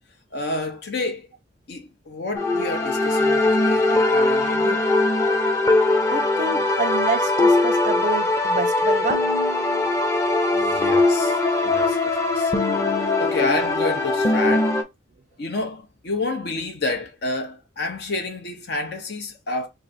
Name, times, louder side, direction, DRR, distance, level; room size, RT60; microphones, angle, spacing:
voice 1, 0.3-1.3 1.7-4.8 10.5-12.5 13.2-14.8 15.4-19.7, left 2 dB, 60° left, 0.7 m, -29 dB
sound 1, 2.3-14.8, left 2 dB, 15° left, 0.7 m, -20 dB
voice 2, 6.1-9.3, right 3 dB, 40° right, 0.4 m, -28 dB
3.2 x 2.5 x 4.1 m
head